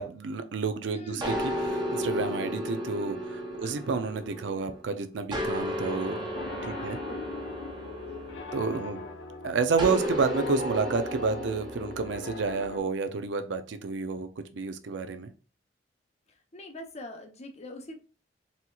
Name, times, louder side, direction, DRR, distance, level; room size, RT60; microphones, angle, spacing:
voice 1, 0.0-6.3 6.6-7.0 8.5-9.0 9.4-15.3, right 4 dB, 85° right, 0.5 m, -30 dB
voice 2, 0.9-1.2 3.6-3.9 6.7-7.3 8.7-9.2 16.3-17.9, left 1 dB, 40° left, 0.7 m, -44 dB
sound 1, 1.2-4.8 5.3-9.0 9.8-12.5, equal, 25° right, 0.8 m, -34 dB
Piano, 6.3-12.8, left 3 dB, 75° left, 0.6 m, -40 dB
4.1 x 2.8 x 2.3 m
head